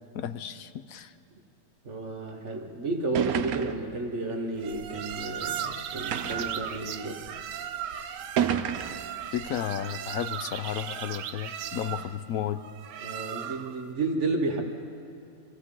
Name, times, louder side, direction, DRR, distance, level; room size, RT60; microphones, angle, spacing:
voice 1, 0.1-1.1 9.3-12.6, left 10 dB, 70° left, 12 dB, 0.9 m, -33 dB
voice 2, 1.8-7.2 13.0-14.6, right 2 dB, 50° right, 3 dB, 1.3 m, -32 dB
sound 1, 2.5-2.6 3.2-3.9 4.8-4.9 6.1-6.6 7.5-7.6 8.4-9.1, right 9 dB, 65° right, 1.1 m, -29 dB
sound 2, 4.6-13.8, right 9 dB, 85° right, 1.3 m, -37 dB
24.5 x 16.0 x 3.7 m, 2.8 s
omnidirectional pair, 1.8 m